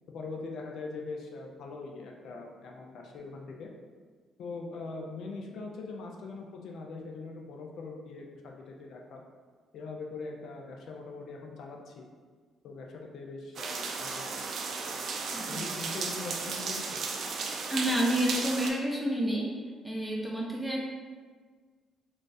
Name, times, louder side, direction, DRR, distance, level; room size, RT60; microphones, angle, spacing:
voice 1, 0.1-3.7 4.4-9.2 9.7-12.1 12.6-14.5 15.2-17.0, left 3 dB, 75° left, 1 dB, 0.4 m, -42 dB
sound 1, 13.6-18.7, right 4 dB, 65° right, 0.4 m, -35 dB
voice 2, 17.7-19.5 19.8-20.9, right 1 dB, 5° right, -2 dB, 0.7 m, -29 dB
3.7 x 2.4 x 2.5 m, 1.5 s
cardioid pair, 90°, 0 cm